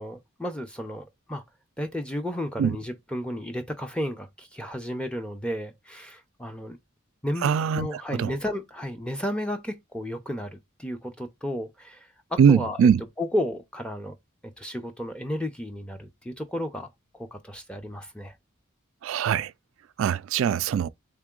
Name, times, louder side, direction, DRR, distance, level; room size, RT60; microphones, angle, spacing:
voice 1, 0.0-1.4 1.8-6.8 7.2-7.5 7.7-12.8 13.2-14.2 14.4-18.4, equal, 5° left, 0.6 m, -33 dB
voice 2, 7.4-8.3 12.4-13.0 19.0-19.5 20.0-20.9, right 7 dB, 75° right, 0.3 m, -22 dB
3.7 x 3.5 x 3.7 m
head